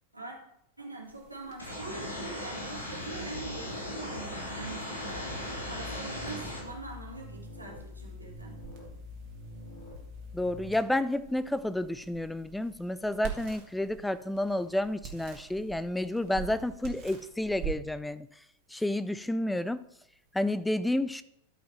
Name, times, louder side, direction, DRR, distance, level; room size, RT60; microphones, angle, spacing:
voice 1, 0.8-5.3 5.6-8.6, right 3 dB, 85° right, -1 dB, 2.1 m, -43 dB
sound 1, 1.0-20.6, right 8 dB, 45° right, 2.0 m, -47 dB
sound 2, 1.6-6.6, left 1 dB, 75° left, 3.2 m, -38 dB
sound 3, 5.1-10.7, left 2 dB, 20° left, 4.1 m, -45 dB
voice 2, 10.3-18.3 18.7-19.8 20.3-21.2, left 1 dB, 5° left, 15 dB, 0.3 m, -30 dB
13.0 x 5.2 x 4.4 m, 0.77 s
figure-of-eight pair, 90°, 0 cm